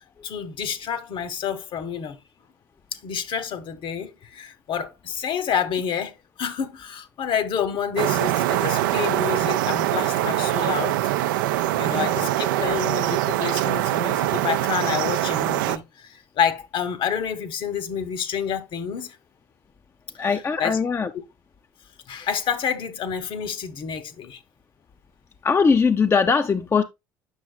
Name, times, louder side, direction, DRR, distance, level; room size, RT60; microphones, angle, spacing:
voice 1, 0.2-2.2 3.0-11.0 11.8-19.2 20.6-20.8 22.1-24.4, left 7 dB, 50° left, 1.0 m, -28 dB
sound 1, 8.0-15.8, right 14 dB, 75° right, 0.4 m, -23 dB
voice 2, 20.2-21.1 25.4-26.8, left 5 dB, 25° left, 0.5 m, -20 dB
8.1 x 6.2 x 2.2 m
hypercardioid pair, 60°, 11 cm